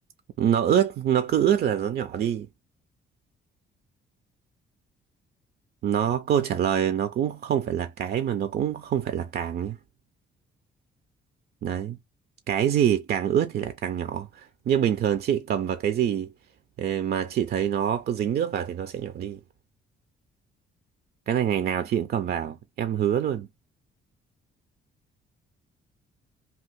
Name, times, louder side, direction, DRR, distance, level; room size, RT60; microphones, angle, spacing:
voice 1, 0.4-2.5 5.8-9.8 11.6-12.0 12.5-16.3 16.8-19.4 21.3-23.5, right 9 dB, 55° right, 0.4 m, -25 dB
2.8 x 2.4 x 3.4 m
cardioid pair, 90°, 20 cm